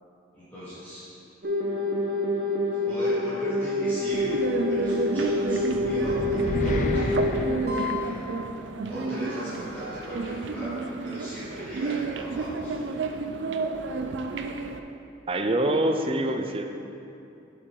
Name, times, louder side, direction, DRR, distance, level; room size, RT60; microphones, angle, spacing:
voice 1, 0.3-1.0 2.8-8.2 8.9-10.7 11.0-13.2, equal, 10° left, -15 dB, 2.2 m, -38 dB
sound 1, 1.4-8.0 9.8-10.0, left 2 dB, 55° right, 0.9 m, -27 dB
sound 2, 4.1-14.8, right 3 dB, 85° right, 0.5 m, -31 dB
sound 3, 5.3-8.6, left 2 dB, 40° left, 0.4 m, -32 dB
voice 2, 15.3-16.7, right 1 dB, 30° right, 5 dB, 0.5 m, -25 dB
8.1 x 6.4 x 4.7 m, 2.7 s
head